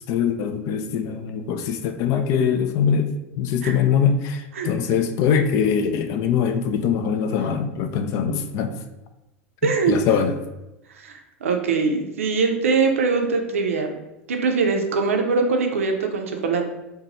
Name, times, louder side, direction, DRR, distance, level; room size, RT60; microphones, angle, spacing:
voice 1, 0.1-8.7 9.6-10.4, left 7 dB, 45° left, 7 dB, 0.3 m, -22 dB
voice 2, 9.6-10.0 11.0-13.9 14.3-16.6, right 4 dB, 75° right, 4 dB, 0.5 m, -22 dB
2.7 x 2.2 x 4.1 m, 0.99 s
hypercardioid pair, 90°, 7 cm